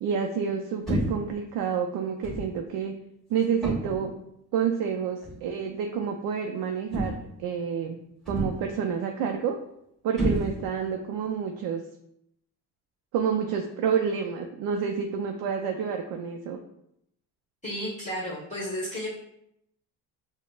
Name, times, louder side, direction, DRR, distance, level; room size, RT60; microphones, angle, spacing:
voice 1, 0.0-3.0 3.3-4.1 4.5-8.0 8.3-9.6 10.0-11.8 13.1-16.6, right 7 dB, 65° right, 3 dB, 0.5 m, -29 dB
sound 1, 0.9-1.3 2.2-2.6 3.6-4.1 5.2-5.4 6.9-7.4 8.3-8.8 10.2-10.9, right 1 dB, ahead, 1.4 m, -30 dB
voice 2, 17.6-19.1, equal, 20° left, -8 dB, 1.1 m, -33 dB
5.0 x 2.1 x 2.4 m, 0.76 s
cardioid pair, 90°, 40 cm